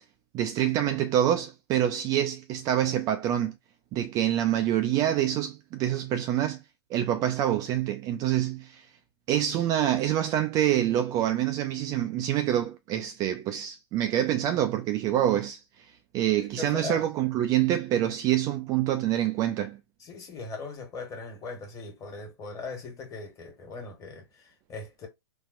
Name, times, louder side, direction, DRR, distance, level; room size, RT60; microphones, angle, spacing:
voice 1, 0.3-3.5 3.9-6.6 6.9-8.9 9.3-15.6 16.1-19.8, right 11 dB, 25° right, 0.4 m, -26 dB
voice 2, 16.4-17.1 20.0-25.1, left 3 dB, 25° left, 1.5 m, -39 dB
4.2 x 2.3 x 2.5 m
hypercardioid pair, 115°, 14 cm